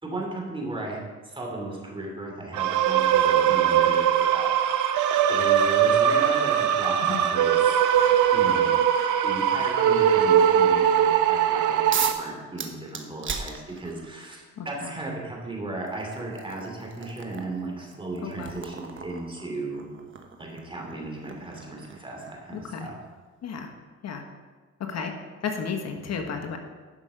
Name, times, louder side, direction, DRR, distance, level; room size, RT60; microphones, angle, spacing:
voice 1, 0.0-1.0 1.2-4.9 5.3-7.8 8.3-8.8 9.2-13.5 13.8-19.9 20.4-22.9, right 2 dB, 15° right, -1 dB, 2.7 m, -35 dB
sound 1, 2.5-12.1, right 9 dB, 85° right, 0.7 m, -21 dB
sound 2, 11.9-12.3 12.6-14.1 15.2-15.3 15.9-22.5, right 6 dB, 40° right, 1.1 m, -37 dB
voice 2, 14.6-14.9 18.2-18.5 22.5-22.9 23.4-23.7 24.0-24.2 24.8-25.1 25.4-26.6, left 6 dB, 60° left, 4 dB, 1.3 m, -33 dB
11.5 x 5.7 x 5.1 m, 1.4 s
cardioid pair, 90°, 30 cm